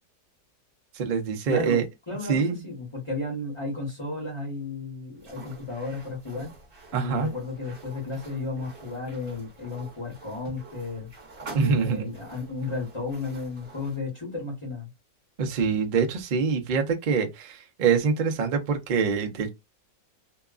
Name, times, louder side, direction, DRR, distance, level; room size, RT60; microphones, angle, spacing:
voice 1, 0.9-1.8 2.3-2.6 6.9-7.3 11.5-12.1 15.4-19.5, right 5 dB, 85° right, 0.4 m, -25 dB
voice 2, 1.5-1.8 2.1-6.5 6.9-11.1 11.5-14.9, left 3 dB, 20° left, 0.9 m, -33 dB
sound 1, 5.2-14.0, right 3 dB, 45° right, 1.0 m, -47 dB
2.8 x 2.3 x 2.3 m
omnidirectional pair, 1.6 m